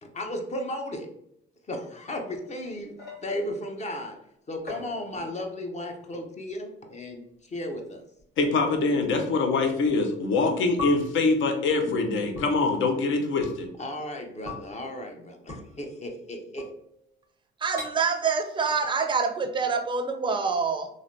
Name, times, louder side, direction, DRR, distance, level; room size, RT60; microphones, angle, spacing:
voice 1, 0.0-1.1 1.7-2.9 3.2-4.2 4.5-8.0 10.5-10.6 13.8-16.7, left 1 dB, 35° left, 4 dB, 0.6 m, -35 dB
sound 1, 2.1-3.6 4.7-5.6 5.9-6.3 7.2-7.3 8.2-8.3 9.9-10.0 10.8-11.3 12.3-12.5 13.4-13.6 14.4-14.7 15.5-15.6 16.6-17.0 17.8-17.9, left 4 dB, 50° left, 1.4 m, -40 dB
voice 2, 8.4-13.7, left 3 dB, 75° left, 4 dB, 0.6 m, -24 dB
voice 3, 17.6-20.9, right 5 dB, 25° right, 6 dB, 0.4 m, -26 dB
3.2 x 2.4 x 2.6 m, 0.76 s
cardioid pair, 90°, 20 cm